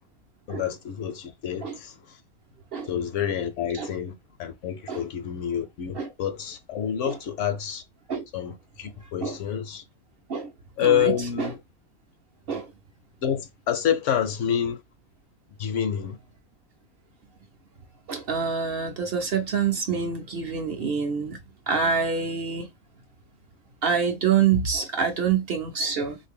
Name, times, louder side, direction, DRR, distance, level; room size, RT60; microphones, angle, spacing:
voice 1, 0.5-1.9 2.9-4.1 4.4-7.8 8.3-9.8 10.8-11.6 13.2-14.8 15.6-16.2, left 9 dB, 65° left, 0.9 m, -28 dB
voice 2, 10.8-11.5 12.5-12.7 18.1-21.4 21.7-22.7 23.8-26.2, right 6 dB, 55° right, 0.7 m, -26 dB
3.1 x 2.6 x 3.5 m
omnidirectional pair, 1.5 m